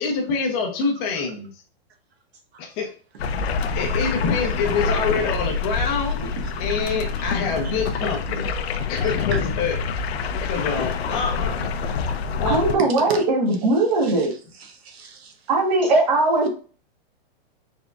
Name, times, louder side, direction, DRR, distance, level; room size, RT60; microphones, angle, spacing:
voice 1, 0.0-1.5 2.6-2.9 3.7-8.5 8.9-9.8 10.4-11.7 12.4-12.8, left 5 dB, 20° left, 0.6 m, -26 dB
voice 2, 2.5-2.9 3.3-3.4 6.4-6.5 6.9-7.3 7.5-7.7 8.9-9.4 12.0-12.1 12.8-13.2 13.8-15.5, right 4 dB, 85° right, 1.2 m, -37 dB
sound 1, 3.2-12.8, left 5 dB, 80° left, 0.7 m, -26 dB
voice 3, 12.5-14.3 15.5-16.5, right 2 dB, 40° right, 1.4 m, -19 dB
4.5 x 3.6 x 2.4 m
supercardioid pair, 165°, 31 cm